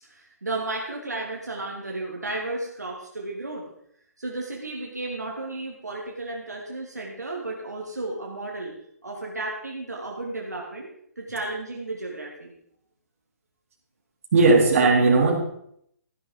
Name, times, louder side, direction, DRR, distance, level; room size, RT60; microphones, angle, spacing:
voice 1, 0.0-3.7 4.2-8.8 9.0-10.9 11.2-12.5, right 2 dB, 85° right, -2 dB, 2.7 m, -33 dB
voice 2, 14.3-15.3, right 3 dB, 55° right, 0 dB, 3.7 m, -17 dB
14.0 x 11.0 x 3.9 m, 0.70 s
figure-of-eight pair, 130°, 9 cm